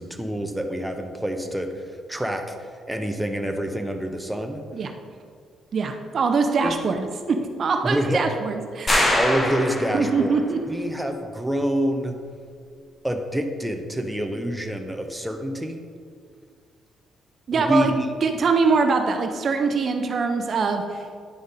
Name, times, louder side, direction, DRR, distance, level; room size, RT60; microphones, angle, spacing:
voice 1, 0.0-1.8 2.1-4.6 6.6-6.7 7.8-8.2 9.1-10.4 10.7-12.2 13.0-15.8 17.5-18.1, equal, 5° right, 4 dB, 0.8 m, -27 dB
voice 2, 5.7-8.9 9.9-10.6 17.5-17.9 18.2-21.0, right 4 dB, 50° right, 6 dB, 0.6 m, -23 dB
sound 1, 8.9-10.4, left 1 dB, 25° left, 1.2 m, -23 dB
9.7 x 5.0 x 4.1 m, 2.1 s
cardioid pair, 90°, 0 cm